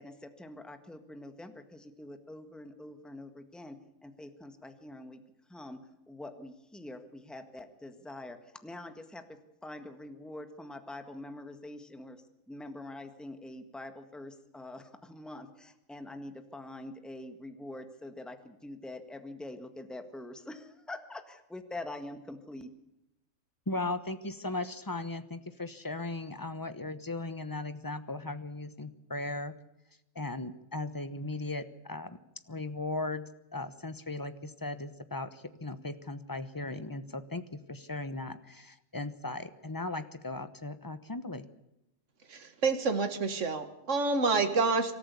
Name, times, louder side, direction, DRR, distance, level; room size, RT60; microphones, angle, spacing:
voice 1, 0.0-5.2 5.5-5.8 6.1-8.4 8.6-9.2 9.6-12.2 12.5-22.7, left 1 dB, ahead, 8 dB, 1.6 m, -45 dB
voice 2, 23.7-29.6 30.1-32.2 32.5-33.2 33.5-41.5, left 2 dB, 15° left, 12 dB, 1.0 m, -37 dB
voice 3, 42.3-44.9, right 4 dB, 60° right, 7 dB, 2.1 m, -28 dB
24.5 x 13.5 x 8.3 m, 0.88 s
omnidirectional pair, 1.4 m